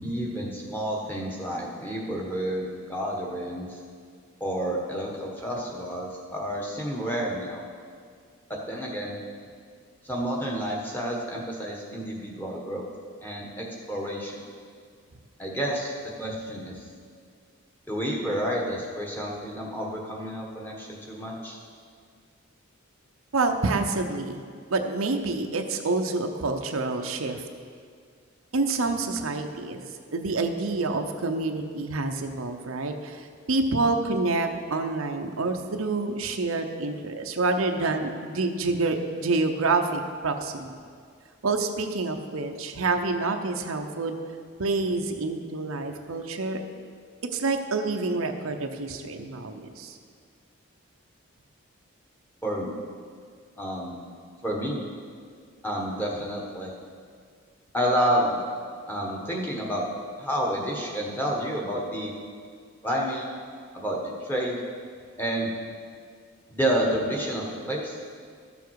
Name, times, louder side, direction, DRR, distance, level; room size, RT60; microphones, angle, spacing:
voice 1, 0.0-3.8 4.4-7.6 8.5-9.2 10.0-12.9 13.2-14.4 15.4-16.8 17.9-21.6 52.4-52.7 53.6-54.0 54.4-54.8 55.6-56.7 57.7-58.4 58.9-59.8 60.2-62.1 62.8-63.3 63.7-64.6 65.2-65.5 66.5-68.0, equal, 10° left, -2 dB, 1.3 m, -29 dB
voice 2, 23.3-24.4 24.7-27.5 28.5-29.8 30.1-40.7 41.4-44.2 44.6-46.6 47.3-50.0, right 3 dB, 75° right, 5 dB, 0.7 m, -27 dB
13.5 x 7.1 x 4.7 m, 2.1 s
head